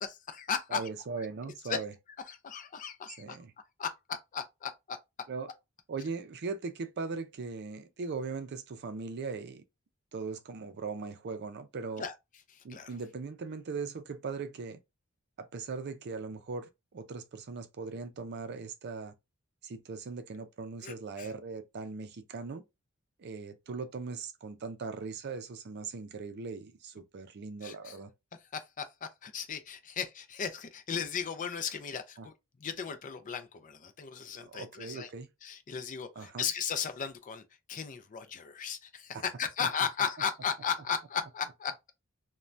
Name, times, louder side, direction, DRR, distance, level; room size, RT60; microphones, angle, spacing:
voice 1, 0.0-0.8 1.7-1.8 2.3-3.4 3.8-5.0 12.0-12.1 12.5-12.9 20.8-21.3 27.6-28.0 28.5-32.3 32.6-35.1 35.4-37.4 37.7-41.9, left 7 dB, 40° left, 0.4 m, -36 dB
voice 2, 0.7-1.9 3.2-3.5 5.3-5.5 5.9-9.6 10.1-12.0 12.6-14.8 15.4-19.1 19.6-22.6 23.2-28.1 32.2-32.3 34.4-35.3 36.2-36.4 39.1-39.2 39.6-39.7, right 4 dB, 50° right, 0.4 m, -39 dB
2.6 x 2.2 x 3.1 m
head